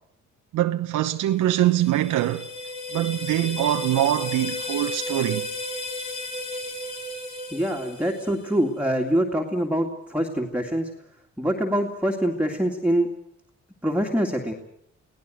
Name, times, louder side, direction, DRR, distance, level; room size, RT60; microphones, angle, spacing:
voice 1, 0.5-2.5 2.9-5.5, right 13 dB, 85° right, 1.0 m, -23 dB
sound 1, 1.4-8.5, left 1 dB, 70° left, 4.7 m, -33 dB
voice 2, 7.5-10.9 11.4-13.1 13.8-14.5, equal, 5° right, 2.3 m, -24 dB
24.0 x 17.5 x 7.9 m
cardioid pair, 90°, 30 cm